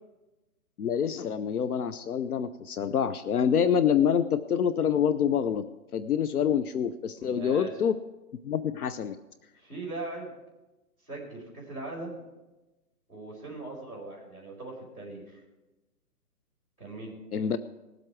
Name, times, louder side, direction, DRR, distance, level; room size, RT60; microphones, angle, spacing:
voice 1, 0.8-5.6 5.9-8.0 8.4-9.2 17.3-17.6, left 8 dB, 70° left, 13 dB, 0.7 m, -26 dB
voice 2, 7.2-7.7 9.6-10.3 11.0-12.2 13.1-15.4 16.8-17.2, right 2 dB, 10° left, -9 dB, 3.7 m, -40 dB
19.0 x 7.8 x 4.6 m, 1.1 s
hypercardioid pair, 180°, 47 cm